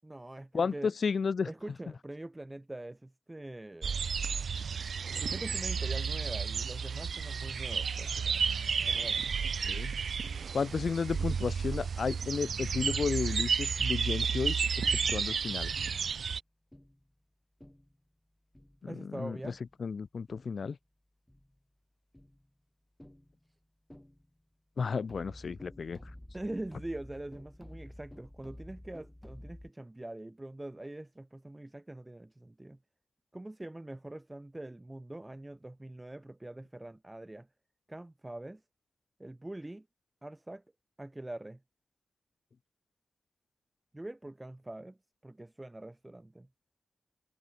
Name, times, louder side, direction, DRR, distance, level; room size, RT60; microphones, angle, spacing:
voice 1, 0.0-0.9 1.4-4.0 5.2-8.5 8.8-9.3 18.8-19.6 26.3-32.8 33.3-37.5 37.9-38.6 39.2-39.9 40.2-40.6 41.0-41.6 43.9-45.0 45.2-46.5, right 1 dB, 15° right, 1.9 m, -43 dB
voice 2, 0.5-1.5 9.6-9.9 10.5-15.7 18.8-19.5 19.8-20.8 24.8-26.0, left 5 dB, 50° left, 0.7 m, -33 dB
sound 1, 3.8-16.4, right 6 dB, 65° right, 0.6 m, -32 dB
sound 2, 10.2-10.7 11.2-11.7 12.0-12.5 13.0-13.3 13.9-14.3 14.8-15.2 15.8-16.2 16.7-17.1 17.6-18.0 18.5-18.9 19.4-19.8 20.3-20.7 21.3-21.6 22.1-22.5 23.0-23.5 23.9-24.4 24.8-29.7, left 1 dB, 5° left, 4.0 m, -52 dB
wide cardioid pair, 165°, 0 cm